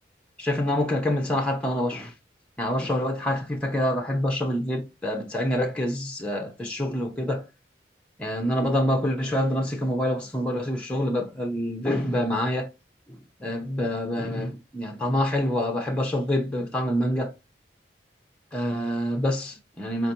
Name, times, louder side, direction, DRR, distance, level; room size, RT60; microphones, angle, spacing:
voice 1, 0.4-2.1 2.6-7.5 8.2-12.7 13.1-17.3 18.5-20.1, left 1 dB, 5° left, 0.6 m, -26 dB
4.4 x 2.8 x 2.7 m
head